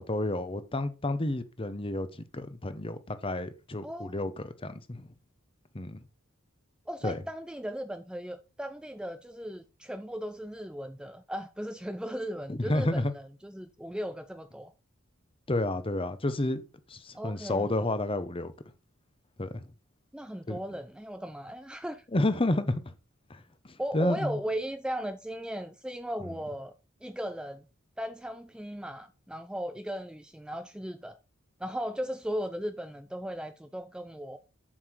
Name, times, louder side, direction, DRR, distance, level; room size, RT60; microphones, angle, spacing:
voice 1, 0.0-2.1 2.3-5.1 5.7-6.0 7.0-7.2 12.5-13.1 15.5-16.6 16.9-18.5 19.4-19.6 20.5-20.6 22.1-22.9 23.3-24.4, left 1 dB, 25° left, 0.9 m, -30 dB
voice 2, 3.8-4.1 6.9-14.7 17.1-17.7 20.1-22.0 23.8-26.7 27.0-27.7 28.0-31.2 31.6-34.4, equal, 5° right, 0.4 m, -37 dB
7.4 x 7.0 x 4.5 m
head